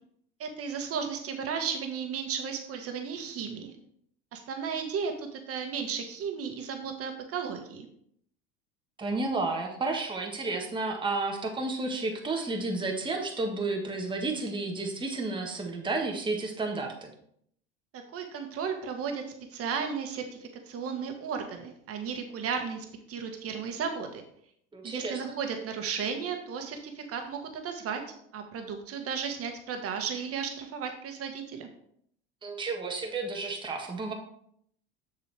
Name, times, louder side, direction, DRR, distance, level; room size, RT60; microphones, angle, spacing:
voice 1, 0.4-3.7 4.3-7.9 17.9-19.2 19.5-20.2 20.7-24.2 24.8-28.0 28.3-31.7, right 6 dB, 45° right, 5 dB, 1.6 m, -34 dB
voice 2, 9.0-17.1 24.7-25.4 32.4-34.1, right 3 dB, 15° right, 1 dB, 1.4 m, -32 dB
6.9 x 6.6 x 3.4 m, 0.68 s
hypercardioid pair, 90°, 33 cm